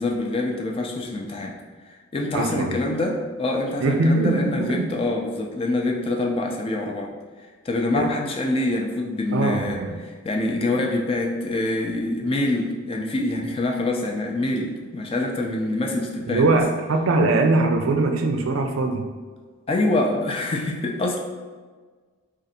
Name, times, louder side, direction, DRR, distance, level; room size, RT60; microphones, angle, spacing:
voice 1, 0.0-1.6 1.9-7.1 7.7-16.5 19.7-21.2, left 2 dB, 25° left, 1 dB, 0.3 m, -25 dB
voice 2, 2.3-2.8 3.8-4.9 7.9-8.1 9.3-10.0 16.3-19.1, right 2 dB, 70° right, 4 dB, 0.4 m, -21 dB
2.5 x 2.4 x 4.0 m, 1.4 s
head